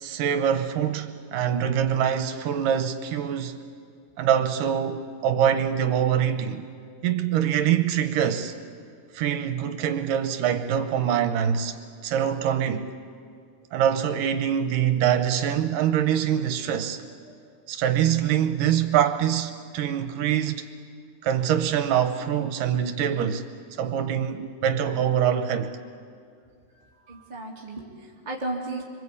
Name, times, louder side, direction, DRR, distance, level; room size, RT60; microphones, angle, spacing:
voice 1, 0.0-3.6 4.2-6.7 7.0-8.5 9.1-11.8 12.0-12.9 13.7-17.0 17.7-20.6 21.2-23.5 23.8-25.7, right 9 dB, 75° right, 2.5 m, -24 dB
voice 2, 26.7-28.8, right 2 dB, 15° right, 2.3 m, -35 dB
26.0 x 25.0 x 8.5 m
omnidirectional pair, 3.9 m